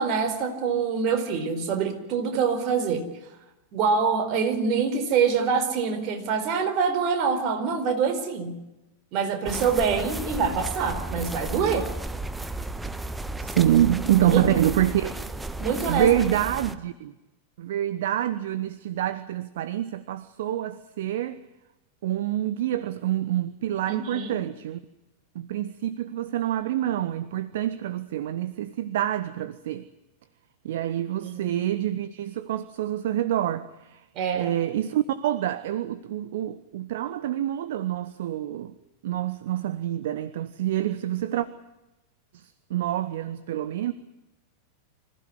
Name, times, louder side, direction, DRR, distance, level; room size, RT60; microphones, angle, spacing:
voice 1, 0.0-3.1 3.7-8.6 9.1-11.9 14.2-14.4 14.7-14.8 15.6-16.1 23.9-24.4 31.2-31.5 34.1-34.5, right 5 dB, 40° right, 4.4 m, -25 dB
sound 1, 9.4-16.7, right 2 dB, 10° right, 1.2 m, -34 dB
voice 2, 13.4-15.2 15.9-17.1 17.6-21.4 22.0-24.8 25.3-29.9 30.6-34.0 34.3-38.7 39.0-41.5 42.3-43.9, right 12 dB, 55° right, 0.9 m, -26 dB
25.5 x 15.5 x 9.8 m
figure-of-eight pair, 90°, 0 cm